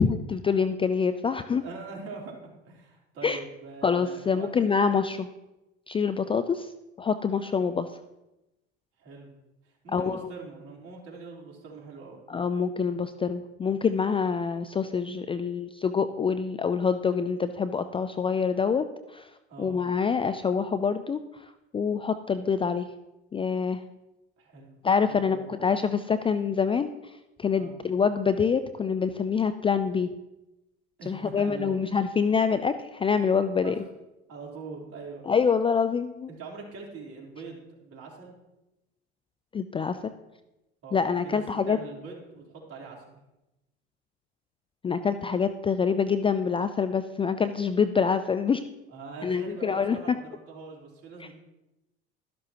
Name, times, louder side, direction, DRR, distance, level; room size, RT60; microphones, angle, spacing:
voice 1, 0.0-1.6 3.2-3.4 3.8-5.3 5.9-6.7 7.0-7.9 9.9-10.3 12.3-22.9 23.3-23.8 24.8-30.1 31.1-33.8 35.3-36.3 39.5-40.1 40.9-41.8 44.8-48.6 49.2-50.2 51.2-51.3, left 6 dB, 15° left, 11 dB, 0.4 m, -26 dB
voice 2, 1.6-4.5 9.0-9.3 9.6-12.2 19.5-19.7 24.4-24.8 25.1-25.6 27.6-27.7 31.0-31.8 33.6-33.7 34.3-35.3 36.4-38.4 40.8-43.2 48.9-51.4, right 4 dB, 45° right, -2 dB, 3.9 m, -43 dB
13.0 x 11.0 x 3.0 m, 0.97 s
hypercardioid pair, 85°, 31 cm